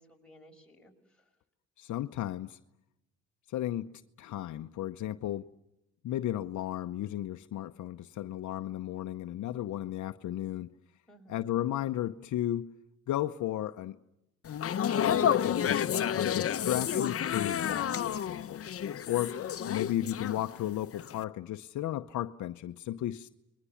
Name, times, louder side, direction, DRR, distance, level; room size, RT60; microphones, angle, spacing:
voice 1, 0.0-1.4 11.1-11.5 18.8-19.3, left 1 dB, 5° left, 5.9 m, -57 dB
voice 2, 1.8-2.6 3.5-5.5 6.0-10.7 11.3-12.7 13.1-14.0 15.4-18.6 19.1-19.4 19.6-23.3, left 13 dB, 75° left, 0.8 m, -34 dB
sound 1, 14.5-20.7 21.0-21.2, left 9 dB, 50° left, 1.0 m, -30 dB
29.5 x 22.0 x 7.1 m
cardioid pair, 90°, 30 cm